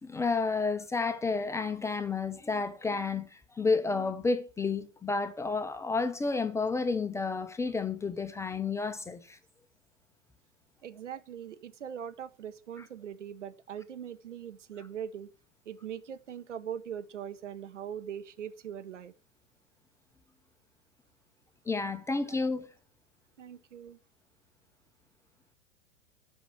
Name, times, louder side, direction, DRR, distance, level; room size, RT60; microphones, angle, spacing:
voice 1, 0.0-9.4 21.7-22.7, left 4 dB, 10° left, 0.6 m, -31 dB
voice 2, 10.8-15.3 15.7-19.1 22.3-22.4 23.4-24.0, right 9 dB, 75° right, 1.0 m, -41 dB
10.0 x 5.4 x 6.0 m
figure-of-eight pair, 100°, 37 cm